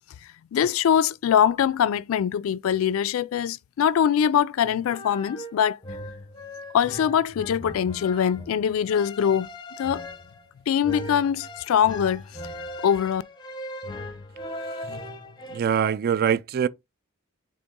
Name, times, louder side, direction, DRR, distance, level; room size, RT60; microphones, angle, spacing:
voice 1, 0.5-5.8 6.7-9.5 9.8-10.1 10.7-12.2 12.8-13.2, left 8 dB, 70° left, 0.3 m, -23 dB
sound 1, 4.6-15.6, left 1 dB, 20° left, 0.7 m, -39 dB
voice 2, 15.5-16.7, right 8 dB, 45° right, 0.3 m, -23 dB
4.0 x 3.3 x 3.6 m
head